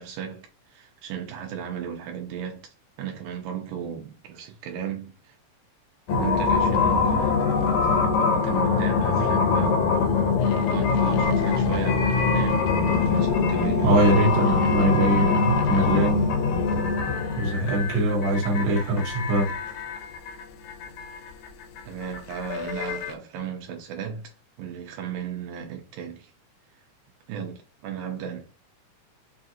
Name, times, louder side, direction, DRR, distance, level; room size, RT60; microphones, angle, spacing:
voice 1, 0.0-5.4 6.1-7.5 8.2-10.2 10.5-14.1 21.8-24.3 24.6-26.3 27.3-28.5, right 8 dB, 80° right, 2.3 m, -35 dB
sound 1, 6.1-23.1, left 5 dB, 75° left, 1.8 m, -23 dB
voice 2, 13.8-16.2 17.4-19.5, right 1 dB, 60° right, 2.2 m, -22 dB
5.7 x 2.4 x 2.7 m
omnidirectional pair, 3.8 m